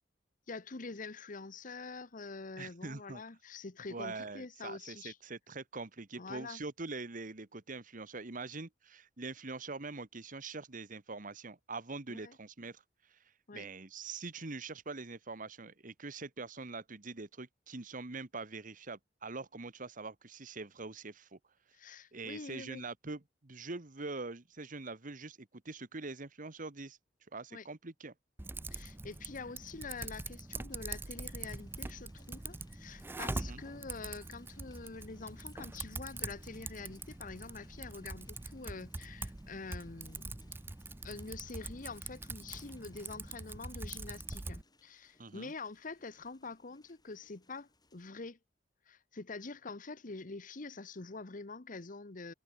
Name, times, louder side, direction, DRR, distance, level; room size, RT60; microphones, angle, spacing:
voice 1, 0.5-5.2 6.2-6.6 12.1-12.4 13.5-13.7 21.7-22.9 27.5-27.7 28.7-40.5 41.0-48.4 48.9-52.3, left 3 dB, 50° left, 1.1 m, -46 dB
voice 2, 2.6-3.2 3.9-12.8 13.1-13.2 13.5-21.4 22.1-27.0 27.3-28.1 33.3-33.6 45.2-45.5, right 3 dB, 50° right, 1.5 m, -44 dB
Typing, 28.4-44.6, right 2 dB, 10° right, 0.5 m, -44 dB
sound 1, 30.7-48.1, left 3 dB, 25° left, 6.8 m, -70 dB
head